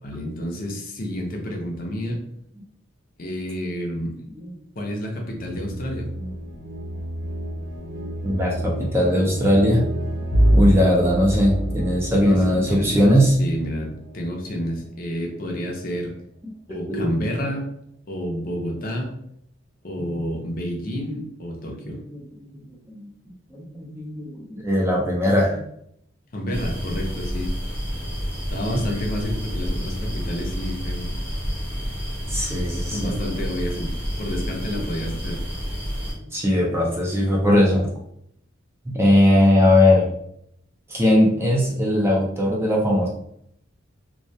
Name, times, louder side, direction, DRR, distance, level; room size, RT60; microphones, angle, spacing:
voice 1, 0.0-2.2 3.2-4.2 4.8-6.1 12.2-12.4 12.7-16.1 16.7-17.7 18.1-19.1 19.8-22.0 26.3-27.5 28.5-31.1 32.9-35.4, equal, 45° left, 0 dB, 0.5 m, -29 dB
sound 1, 5.4-15.2, right 1 dB, 60° right, 0.6 m, -33 dB
voice 2, 8.2-9.8 10.5-13.4 16.9-17.1 20.0-20.1 21.7-22.2 22.5-22.6 22.9-23.1 23.5-25.6 28.7-28.8 32.3-33.1 36.2-37.9 38.9-40.1 40.9-43.1, left 1 dB, 10° right, -3 dB, 0.4 m, -19 dB
Bowed string instrument, 10.3-13.4, equal, 85° left, 0.8 m, -22 dB
sound 2, 26.5-36.1, equal, 10° left, 0.7 m, -29 dB
2.2 x 2.1 x 2.6 m, 0.71 s
head